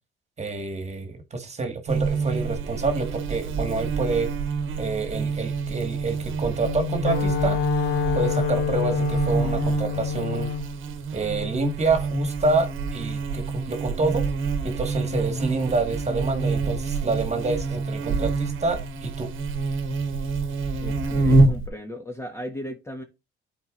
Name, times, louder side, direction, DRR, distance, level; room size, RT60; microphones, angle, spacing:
voice 1, 0.4-4.3 4.8-7.6 8.1-10.5 11.1-14.3 14.6-19.3, right 3 dB, 35° right, 1.7 m, -27 dB
Buzz, 1.9-21.7, right 3 dB, 85° right, 1.0 m, -27 dB
Wind instrument woodwind instrument, 6.6-10.7, left 7 dB, 80° left, 0.9 m, -26 dB
voice 2, 20.8-23.0, equal, 15° left, 1.2 m, -36 dB
12.0 x 4.6 x 2.5 m
cardioid pair, 90°, 20 cm